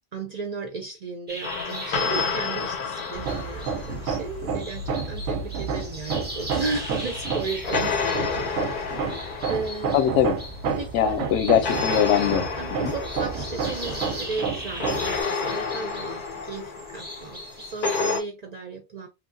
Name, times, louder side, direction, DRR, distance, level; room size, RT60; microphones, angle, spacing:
voice 1, 0.1-9.2 9.5-9.9 10.8-10.9 12.6-19.1, right 4 dB, 55° right, 0.4 m, -35 dB
sound 1, 1.3-18.2, equal, 10° right, 0.7 m, -40 dB
sound 2, 1.4-4.6 6.1-11.1 11.6-18.2, left 5 dB, 55° left, 0.6 m, -31 dB
Hammer, 3.1-15.2, right 5 dB, 85° right, 0.9 m, -30 dB
voice 2, 9.9-10.3 10.9-12.5 12.8-12.9, left 9 dB, 85° left, 0.9 m, -21 dB
2.9 x 2.3 x 2.6 m
omnidirectional pair, 1.2 m